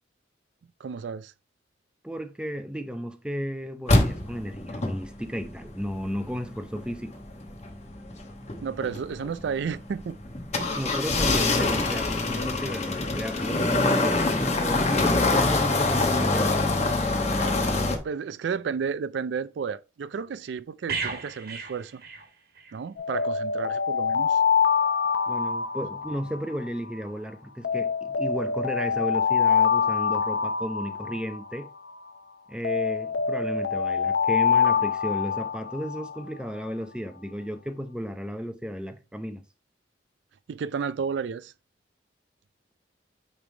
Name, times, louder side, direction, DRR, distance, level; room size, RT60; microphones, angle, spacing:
voice 1, 0.8-1.3 8.6-10.2 17.8-22.0 22.7-24.4 40.5-41.5, right 6 dB, 75° right, 0.4 m, -32 dB
voice 2, 2.0-7.2 10.8-16.6 25.3-31.7 32.5-39.4, equal, 5° right, 0.6 m, -34 dB
sound 1, 3.9-18.0, left 2 dB, 40° left, 1.0 m, -25 dB
sound 2, 20.9-22.8 23.1-23.3, right 5 dB, 55° right, 1.3 m, -35 dB
Alarm, 23.0-27.1 27.6-32.1 32.6-36.4, left 6 dB, 75° left, 0.6 m, -25 dB
8.7 x 3.3 x 3.3 m
head